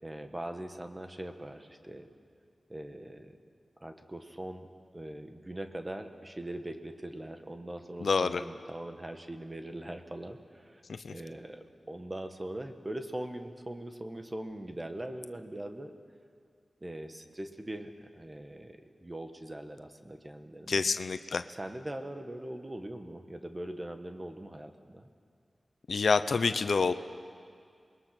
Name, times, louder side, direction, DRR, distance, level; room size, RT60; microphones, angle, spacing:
voice 1, 0.0-2.1 2.7-3.4 3.8-4.7 4.9-10.8 11.1-15.9 16.8-20.9 21.5-25.1, right 1 dB, 25° right, 6 dB, 1.6 m, -41 dB
voice 2, 8.0-8.4 10.9-11.1 20.7-21.4 25.9-26.9, left 4 dB, 80° left, 11 dB, 0.7 m, -27 dB
28.0 x 21.5 x 6.1 m, 2.2 s
cardioid pair, 55°, 0 cm